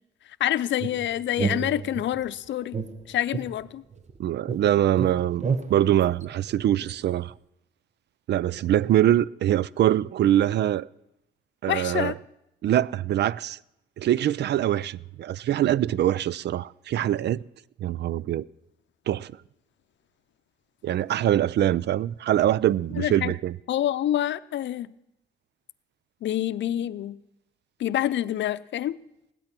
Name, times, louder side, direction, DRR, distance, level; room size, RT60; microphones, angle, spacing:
voice 1, 0.4-2.8 3.1-3.8 11.7-12.1 23.0-23.3 23.7-24.9 26.2-27.2 27.8-29.0, left 12 dB, 65° left, 0.6 m, -27 dB
sound 1, 0.8-2.3 2.7-4.2 4.5-7.0, right 5 dB, 35° right, 1.2 m, -32 dB
voice 2, 4.2-7.3 8.3-10.9 11.6-12.1 12.6-13.6 14.0-17.4 17.8-18.4 19.1-19.3 20.8-23.6, right 12 dB, 60° right, 0.4 m, -23 dB
16.5 x 12.0 x 6.0 m
cardioid pair, 90°, 20 cm